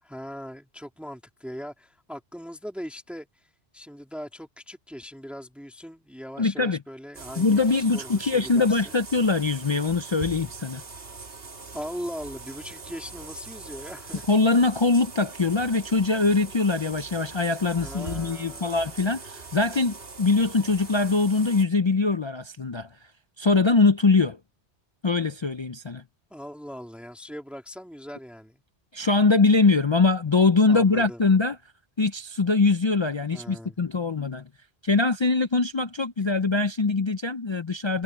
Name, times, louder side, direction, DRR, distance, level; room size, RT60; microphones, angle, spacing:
voice 1, 0.0-9.0 11.7-14.3 17.8-18.9 26.3-28.6 30.7-31.2 33.3-33.8, equal, ahead, 3.0 m, -40 dB
voice 2, 6.4-6.8 7.4-10.8 14.3-22.9 23.4-24.4 25.0-26.0 28.9-31.6 32.0-34.4 34.8-38.0, left 3 dB, 40° left, 0.4 m, -22 dB
sound 1, 7.1-21.6, right 4 dB, 60° right, 1.8 m, -42 dB
omnidirectional pair, 1.2 m